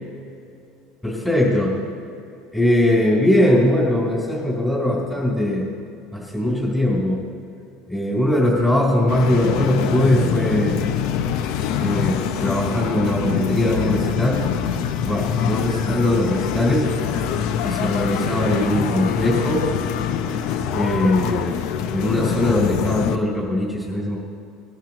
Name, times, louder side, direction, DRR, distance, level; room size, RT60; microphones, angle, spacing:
voice 1, 1.0-1.7 2.5-5.6 6.1-7.2 7.9-10.8 11.8-14.4 15.0-16.9 17.6-19.6 20.7-21.6 21.9-24.2, left 1 dB, 10° left, -6 dB, 3.5 m, -20 dB
sound 1, 9.1-23.2, left 8 dB, 65° left, 0.7 m, -24 dB
20.0 x 12.0 x 3.0 m, 2.6 s
supercardioid pair, 125°, 0 cm